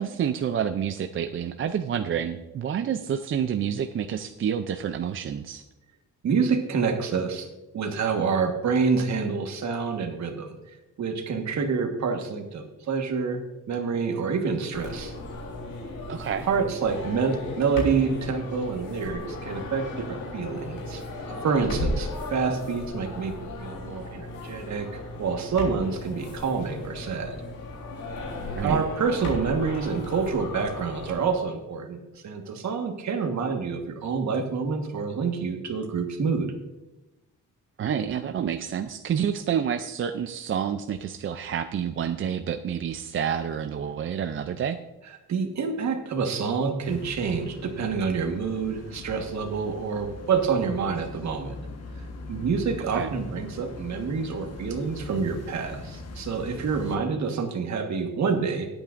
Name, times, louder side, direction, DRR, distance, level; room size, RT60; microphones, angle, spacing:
voice 1, 0.0-5.6 16.1-16.5 28.5-28.8 37.8-44.8 52.9-53.1, right 8 dB, 40° right, 8 dB, 0.4 m, -28 dB
voice 2, 6.2-7.5 7.7-10.6 11.0-13.4 13.7-15.1 16.4-21.0 21.3-23.3 23.6-24.9 25.2-27.4 28.6-36.5 45.3-51.6 52.3-58.7, right 5 dB, 60° right, 4 dB, 1.5 m, -27 dB
sound 1, 14.7-31.3, left 2 dB, 80° left, 3.6 m, -35 dB
sound 2, 46.8-57.0, left 3 dB, 50° left, 1.4 m, -41 dB
19.0 x 8.9 x 2.5 m, 1.0 s
wide cardioid pair, 175°, 32 cm